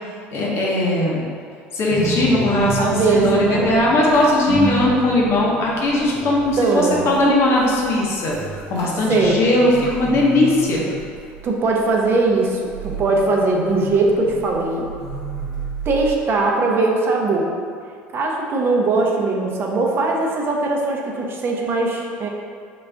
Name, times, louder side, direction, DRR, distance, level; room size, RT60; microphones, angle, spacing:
voice 1, 0.3-1.2 1.7-8.4 8.7-10.9, left 1 dB, 50° left, -3 dB, 0.9 m, -19 dB
sound 1, 1.9-16.1, right 2 dB, 70° right, 1.0 m, -30 dB
voice 2, 2.8-3.7 6.6-7.4 9.1-9.5 11.4-14.9 15.9-17.5 18.1-22.3, right 3 dB, 45° right, 0 dB, 0.6 m, -20 dB
3.9 x 2.4 x 3.3 m, 2.2 s
hypercardioid pair, 80°, 6 cm